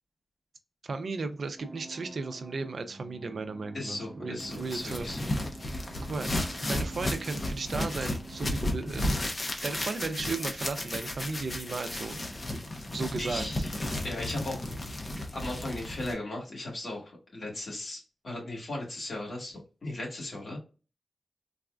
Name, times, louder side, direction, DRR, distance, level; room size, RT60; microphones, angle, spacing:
voice 1, 0.8-5.1 6.0-9.1 9.6-12.3 12.5-12.6 12.9-13.6, right 3 dB, 70° right, 8 dB, 0.5 m, -35 dB
sound 1, 1.6-8.8, right 3 dB, 20° right, 0.5 m, -48 dB
voice 2, 3.7-5.3 13.2-13.7 14.0-14.7 15.3-20.6, left 2 dB, 65° left, -2 dB, 1.7 m, -37 dB
sound 2, 4.4-16.1, left 1 dB, 40° left, 0.8 m, -34 dB
4.0 x 2.4 x 2.2 m, 0.33 s
cardioid pair, 60°, 0 cm